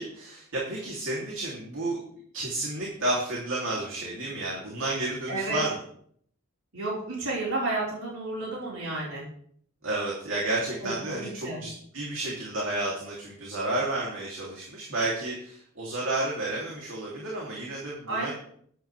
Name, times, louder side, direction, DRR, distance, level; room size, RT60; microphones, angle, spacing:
voice 1, 0.0-2.0 2.3-5.8 9.8-18.3, right 2 dB, 65° right, -3 dB, 3.1 m, -31 dB
voice 2, 5.3-5.6 6.7-9.2 10.8-11.6 18.1-18.3, right 2 dB, 85° right, -5 dB, 4.9 m, -31 dB
13.5 x 11.0 x 3.5 m, 0.62 s
head